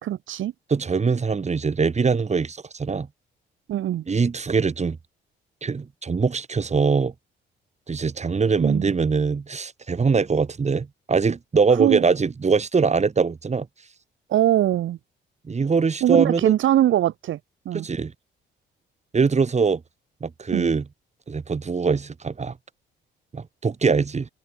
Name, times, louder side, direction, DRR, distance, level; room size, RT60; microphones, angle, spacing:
voice 1, 0.0-0.5 3.7-4.0 8.6-8.9 11.8-12.0 14.3-15.0 16.0-17.4 17.7-17.9 20.5-20.7, right 12 dB, 75° right, 5.3 m, -22 dB
voice 2, 0.7-3.1 4.1-5.0 5.6-7.1 7.9-13.7 15.4-16.5 17.7-18.1 19.1-19.8 20.2-20.8 21.3-22.5 23.3-24.3, right 5 dB, 35° right, 8.0 m, -22 dB
cardioid pair, 90°, 20 cm